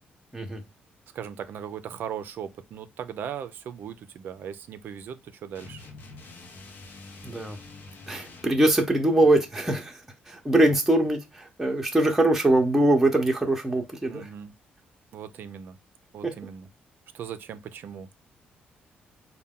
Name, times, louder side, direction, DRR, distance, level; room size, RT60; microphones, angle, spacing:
voice 1, 1.1-5.8 14.1-14.5 15.1-15.8 16.1-16.7 17.1-18.1, right 8 dB, 65° right, 0.4 m, -38 dB
sound 1, 5.6-8.6, left 3 dB, 65° left, 0.8 m, -46 dB
voice 2, 7.2-7.6 8.1-14.3, right 1 dB, 10° right, 0.7 m, -22 dB
4.1 x 2.2 x 3.6 m
cardioid pair, 120°, 4 cm